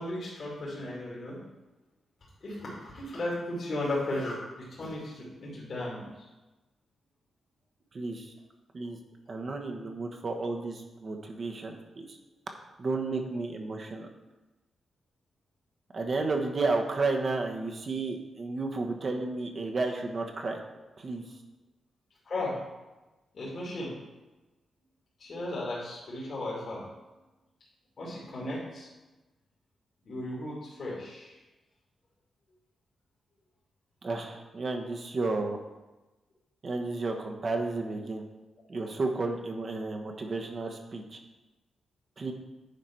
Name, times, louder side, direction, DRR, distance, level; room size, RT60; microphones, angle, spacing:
voice 1, 0.0-1.4 2.4-6.3 22.2-22.6 23.3-23.9 25.2-26.8 28.0-28.9 30.0-31.4, left 1 dB, 60° left, -7 dB, 2.7 m, -35 dB
voice 2, 7.9-8.3 8.7-9.0 9.3-12.2 12.8-14.1 15.9-20.6 21.0-21.2 34.0-35.6 36.6-38.2 38.7-41.2 42.2-42.3, right 3 dB, 50° right, 3 dB, 1.3 m, -32 dB
9.8 x 4.9 x 4.6 m, 1.1 s
cardioid pair, 55°, 0 cm